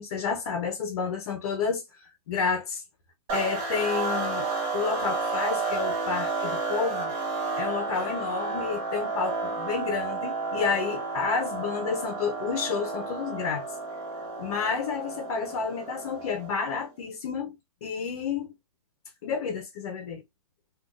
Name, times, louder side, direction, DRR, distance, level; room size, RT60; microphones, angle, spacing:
voice 1, 0.0-2.8 3.3-7.1 7.6-13.6 14.4-18.5 19.2-20.2, left 5 dB, 45° left, 0.7 m, -30 dB
sound 1, 3.3-16.7, right 4 dB, 20° right, 0.9 m, -31 dB
3.6 x 2.4 x 2.3 m
hypercardioid pair, 160°, 20 cm